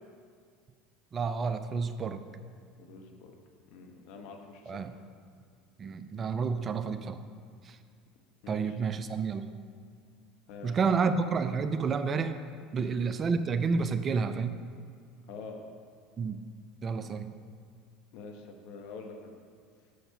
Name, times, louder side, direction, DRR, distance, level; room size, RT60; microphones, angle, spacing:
voice 1, 1.1-2.2 4.7-4.9 5.8-7.2 7.6-7.8 8.5-9.5 10.6-12.4 12.7-14.6 16.2-16.4 16.8-17.3, right 5 dB, 35° right, 10 dB, 0.5 m, -30 dB
voice 2, 2.8-3.3 3.7-4.9 8.4-8.8 10.5-11.0 12.8-13.0 15.3-15.7 18.1-19.3, left 4 dB, 60° left, 3 dB, 1.1 m, -46 dB
6.7 x 6.5 x 5.7 m, 2.1 s
hypercardioid pair, 75°, 0 cm